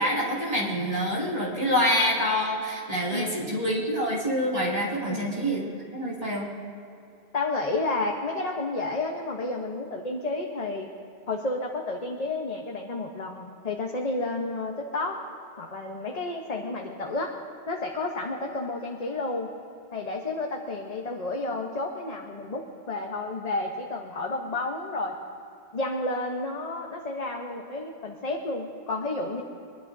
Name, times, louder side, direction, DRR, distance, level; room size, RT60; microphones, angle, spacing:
voice 1, 0.0-5.6 5.9-6.5, equal, 35° right, -6 dB, 2.9 m, -26 dB
voice 2, 7.3-10.9 11.3-15.2 15.6-17.4 17.7-19.5 19.9-25.1 25.7-29.4, left 2 dB, 40° left, 0 dB, 1.1 m, -31 dB
23.5 x 21.0 x 2.7 m, 2.6 s
omnidirectional pair, 1.1 m